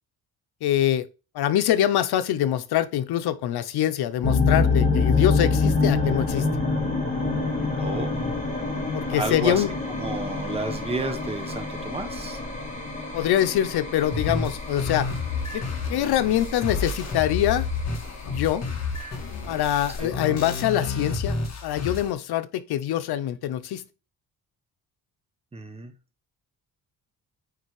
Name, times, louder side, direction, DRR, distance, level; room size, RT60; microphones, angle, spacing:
voice 1, 0.6-1.1 1.3-6.5 8.9-9.7 12.7-12.8 13.1-15.1 15.5-15.6 15.9-17.7 18.2-18.6 19.5-21.4 21.6-23.8, left 11 dB, 85° left, 0.8 m, -24 dB
sound 1, 4.2-20.0, left 3 dB, 20° left, 1.8 m, -27 dB
voice 2, 7.8-8.2 9.1-9.6 10.0-12.4 20.0-20.1 25.5-25.9, right 3 dB, 15° right, 1.1 m, -31 dB
sound 2, 14.1-22.1, left 4 dB, 45° left, 1.9 m, -30 dB
8.9 x 3.4 x 4.8 m
cardioid pair, 150°, 37 cm